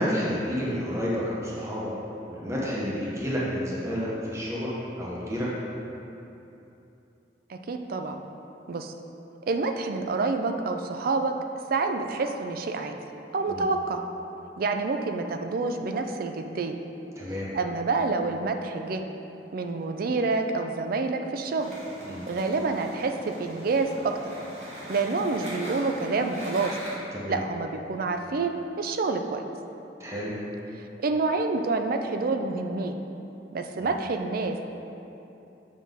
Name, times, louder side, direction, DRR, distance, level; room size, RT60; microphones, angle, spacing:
voice 1, 0.0-1.9 2.3-5.5 13.5-13.7 17.2-17.5 22.0-22.2 27.1-27.4 30.0-30.3 33.8-33.9, equal, 15° right, -6 dB, 0.9 m, -30 dB
voice 2, 7.5-8.2 8.7-8.9 9.4-11.3 11.7-13.0 13.3-14.0 14.6-16.8 17.5-19.0 19.5-21.7 22.3-24.3 24.9-26.8 27.3-29.4 30.8-33.0 33.5-34.6, right 3 dB, 55° right, 6 dB, 0.4 m, -28 dB
sound 1, 21.6-26.9, equal, 40° right, 1.5 m, -41 dB
7.3 x 5.7 x 3.6 m, 2.9 s
head